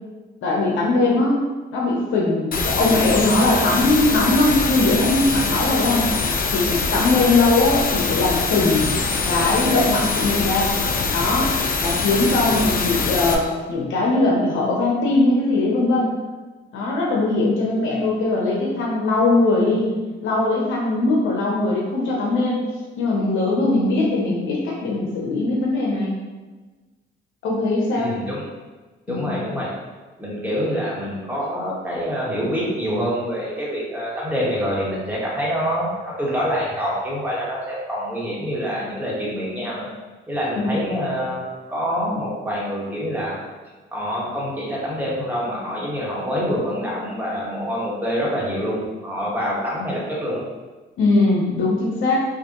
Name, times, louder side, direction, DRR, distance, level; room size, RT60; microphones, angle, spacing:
voice 1, 0.4-1.4 1.7-6.1 6.5-9.0 9.3-10.7 11.1-11.5 11.8-16.2 16.7-20.0 20.2-22.7 23.0-26.1 27.4-28.2 29.1-29.3 40.6-41.0 51.0-52.2, left 2 dB, 80° left, -3 dB, 0.8 m, -20 dB
sound 1, 2.5-13.3, left 4 dB, 45° left, 0.5 m, -23 dB
voice 2, 28.0-28.4 29.1-29.7 30.2-39.9 40.3-43.4 43.9-50.4, equal, 10° right, -6 dB, 1.4 m, -26 dB
4.9 x 2.5 x 2.9 m, 1.3 s
cardioid pair, 90°, 20 cm